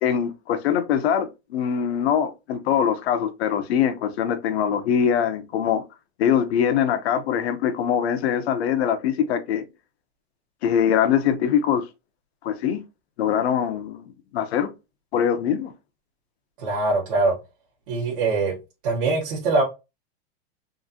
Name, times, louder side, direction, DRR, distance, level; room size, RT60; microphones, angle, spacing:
voice 1, 0.0-5.8 6.2-9.6 10.6-11.8 12.4-12.8 13.2-14.1 14.3-14.7 15.1-15.7, left 8 dB, 75° left, 0.8 m, -23 dB
voice 2, 16.6-17.3 17.9-18.5 18.8-19.6, right 3 dB, 50° right, 1.6 m, -22 dB
3.8 x 2.6 x 2.7 m
supercardioid pair, 170°, 32 cm